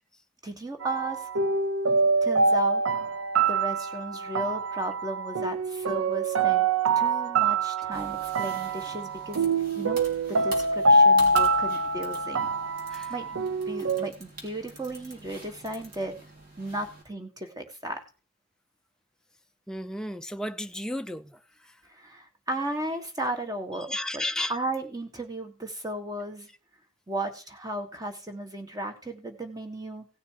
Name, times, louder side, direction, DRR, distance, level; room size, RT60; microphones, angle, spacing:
voice 1, 0.4-1.3 2.2-2.8 3.5-6.7 6.9-9.5 9.7-10.0 10.3-12.5 13.1-16.2 16.6-18.0 21.9-24.2 24.5-26.5 27.1-30.0, right 1 dB, 15° right, 1.6 m, -35 dB
sound 1, 0.8-14.1, right 3 dB, 70° right, 0.7 m, -25 dB
sound 2, 7.9-17.0, right 1 dB, 45° right, 3.7 m, -46 dB
voice 2, 19.7-21.8 23.9-24.5, left 1 dB, 5° left, 0.5 m, -34 dB
17.0 x 6.6 x 4.7 m
head